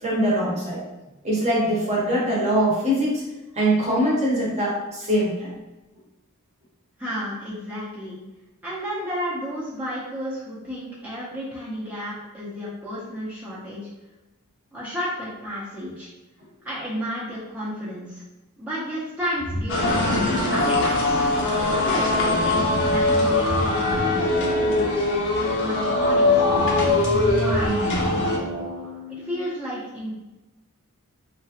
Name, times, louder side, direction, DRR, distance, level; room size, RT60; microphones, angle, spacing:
voice 1, 0.0-0.8 1.2-3.2 3.6-5.5, right 1 dB, 30° right, -5 dB, 0.9 m, -22 dB
voice 2, 7.0-8.1 8.6-13.8 14.7-16.1 16.6-18.2 18.6-21.2 21.8-28.5 29.1-30.1, equal, 5° right, -10 dB, 0.6 m, -32 dB
sound 1, 19.4-29.3, equal, 90° right, 0.7 m, -32 dB
sound 2, 19.7-28.4, left 2 dB, 60° left, 0.6 m, -22 dB
2.9 x 2.4 x 2.8 m, 1.0 s
head